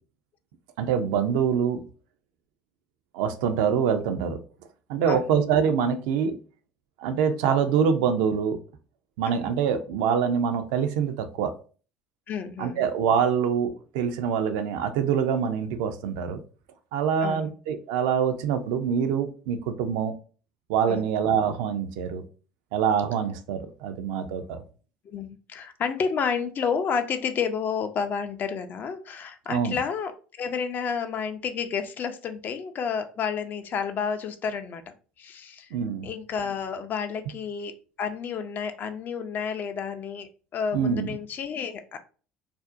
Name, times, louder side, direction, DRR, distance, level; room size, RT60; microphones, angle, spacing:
voice 1, 0.8-1.8 3.1-4.4 4.9-6.4 7.0-8.6 9.2-11.5 12.6-16.4 16.9-20.1 20.7-22.2 22.7-24.6 29.5-29.8 35.7-36.1 40.7-41.2, right 7 dB, 70° right, 8 dB, 0.4 m, -25 dB
voice 2, 12.3-12.8 17.2-17.5 20.9-21.0 25.0-34.8 35.2-35.8 36.0-42.0, left 6 dB, 45° left, 8 dB, 0.4 m, -30 dB
2.5 x 2.0 x 2.5 m, 0.39 s
hypercardioid pair, 65°, 5 cm